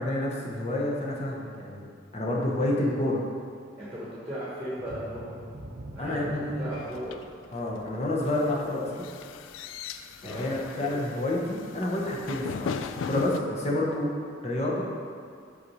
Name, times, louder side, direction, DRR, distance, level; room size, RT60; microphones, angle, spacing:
voice 1, 0.0-1.9 2.1-3.2 6.0-6.7 7.5-8.9 10.2-14.1 14.4-14.9, left 1 dB, 30° left, -3 dB, 0.9 m, -29 dB
voice 2, 3.8-5.3 5.9-7.2 10.2-11.0, equal, 10° right, -8 dB, 1.3 m, -37 dB
sound 1, 4.7-10.2 10.6-10.8 11.3-11.4, right 1 dB, 40° right, 0.6 m, -44 dB
sound 2, 6.7-13.4, left 6 dB, 75° left, 0.3 m, -38 dB
6.1 x 4.1 x 6.2 m, 2.2 s
head